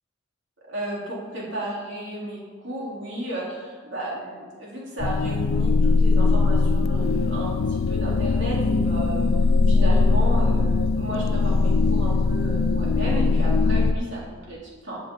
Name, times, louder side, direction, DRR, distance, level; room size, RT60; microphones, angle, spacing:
voice 1, 0.6-9.3 9.7-15.0, right 1 dB, 65° right, -5 dB, 3.8 m, -33 dB
sound 1, 5.0-13.9, left 3 dB, 90° left, 0.4 m, -20 dB
15.5 x 8.4 x 4.0 m, 1.5 s
head